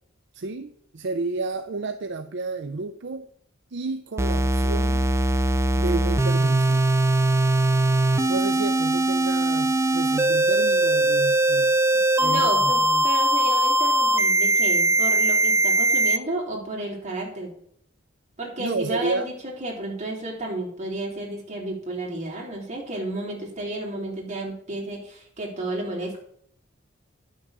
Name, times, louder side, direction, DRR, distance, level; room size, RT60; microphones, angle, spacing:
voice 1, 0.3-3.3 3.7-5.1 5.8-6.9 8.3-11.7 12.2-13.1 18.6-19.3, right 3 dB, 65° right, 0.6 m, -31 dB
sound 1, 4.2-16.2, right 1 dB, 15° right, 0.6 m, -21 dB
voice 2, 12.2-17.5 18.4-19.3 19.6-26.2, right 1 dB, 40° right, 3.8 m, -32 dB
10.5 x 6.4 x 6.6 m
head